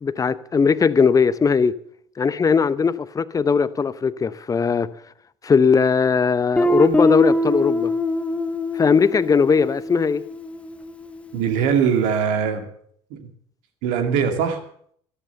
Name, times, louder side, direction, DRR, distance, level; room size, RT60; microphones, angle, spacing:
voice 1, 0.0-1.7 2.2-4.9 5.4-7.9 8.7-10.2, left 5 dB, 25° left, 0.8 m, -19 dB
Guitar, 6.6-11.2, left 1 dB, 10° left, 1.5 m, -23 dB
voice 2, 11.3-12.7 13.1-13.3 13.8-14.6, right 7 dB, 65° right, 2.3 m, -21 dB
13.5 x 12.5 x 6.8 m
hypercardioid pair, 65°, 14 cm